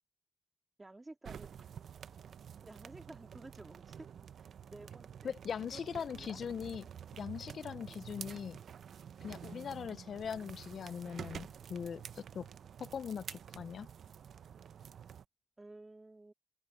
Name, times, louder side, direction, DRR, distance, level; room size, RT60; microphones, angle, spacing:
voice 1, 0.8-1.5 2.6-4.0 4.4-5.3 5.6-6.4 7.8-8.0 9.5-9.7 15.6-16.3, right 2 dB, 20° right, 2.3 m, -53 dB
sound 1, 1.2-15.2, right 8 dB, 80° right, 0.5 m, -49 dB
voice 2, 5.2-6.9 7.2-8.6 9.2-12.5 12.8-13.9, left 7 dB, 70° left, 0.3 m, -41 dB
open air
wide cardioid pair, 110°, 0 cm